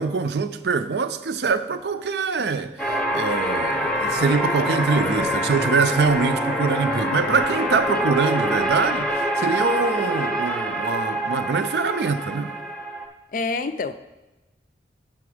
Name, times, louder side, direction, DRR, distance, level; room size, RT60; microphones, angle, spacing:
voice 1, 0.0-12.5, right 4 dB, 70° right, 0.5 m, -24 dB
sound 1, 2.8-13.1, equal, 5° left, 0.7 m, -25 dB
voice 2, 13.3-13.9, left 4 dB, 50° left, 0.4 m, -26 dB
7.0 x 6.0 x 4.9 m
head